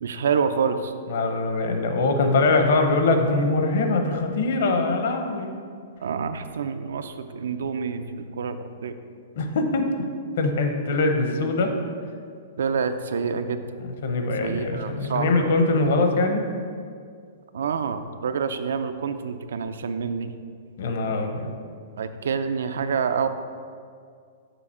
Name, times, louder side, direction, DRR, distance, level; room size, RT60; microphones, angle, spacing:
voice 1, 0.0-0.9 6.0-8.9 12.6-13.6 14.4-15.5 17.5-20.3 22.0-23.3, right 6 dB, 85° right, 9 dB, 0.4 m, -27 dB
voice 2, 1.1-5.5 9.4-9.9 10.4-11.8 13.8-16.4 20.8-21.5, left 3 dB, 55° left, 5 dB, 0.8 m, -22 dB
7.0 x 5.2 x 4.3 m, 2.2 s
hypercardioid pair, 180°, 0 cm